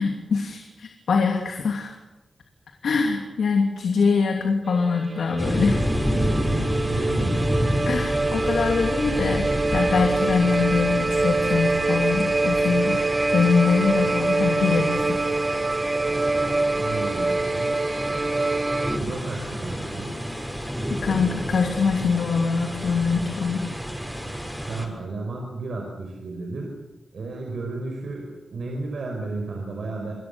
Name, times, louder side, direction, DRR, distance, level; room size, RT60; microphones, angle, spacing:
voice 1, 0.0-2.0 2.8-5.8 7.8-15.2 20.9-23.6, left 5 dB, 90° left, 3 dB, 2.9 m, -23 dB
sound 1, 4.6-19.0, right 2 dB, 35° right, 1.1 m, -25 dB
sound 2, 5.4-24.9, equal, ahead, 6.7 m, -30 dB
voice 2, 6.1-7.4 16.7-18.0 18.9-20.1 24.2-24.3 24.7-26.8 27.1-30.1, right 3 dB, 80° right, 1 dB, 5.5 m, -33 dB
29.5 x 22.0 x 7.0 m, 1.1 s
cardioid pair, 75°, 0 cm